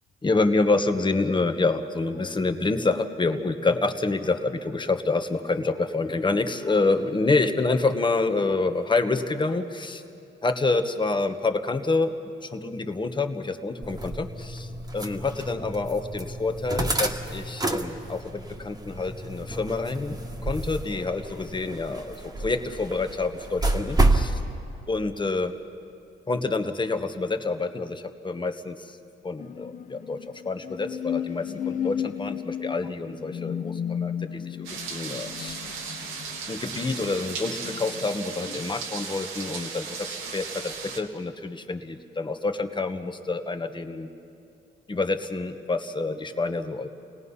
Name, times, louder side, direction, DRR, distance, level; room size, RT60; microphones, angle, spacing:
voice 1, 0.2-10.0 10.4-14.7 14.9-20.2 20.4-24.4 24.9-25.6 26.3-29.0 29.2-30.2 30.4-35.6 36.5-44.1 44.9-46.9, left 3 dB, 25° left, 7 dB, 1.3 m, -27 dB
sound 1, 13.8-24.3, right 2 dB, 20° right, 1.7 m, -29 dB
sound 2, 29.4-38.6, left 9 dB, 40° left, 0.6 m, -35 dB
sound 3, 34.6-41.0, right 5 dB, 90° right, 1.9 m, -36 dB
29.5 x 18.5 x 5.6 m, 2.6 s
cardioid pair, 90°, 20 cm